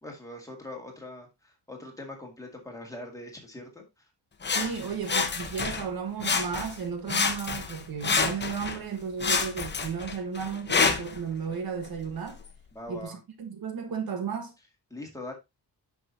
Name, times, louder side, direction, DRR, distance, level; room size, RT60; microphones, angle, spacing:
voice 1, 0.0-4.1 12.7-13.2 14.9-15.3, left 2 dB, 10° left, 2.1 m, -42 dB
Sawing, 4.4-5.9 6.2-6.8 7.1-8.8 9.2-11.2 11.9-12.0, left 5 dB, 25° left, 0.9 m, -28 dB
voice 2, 4.5-12.4 12.9-14.5, right 6 dB, 60° right, 1.4 m, -34 dB
9.5 x 6.2 x 2.7 m
wide cardioid pair, 180°, 41 cm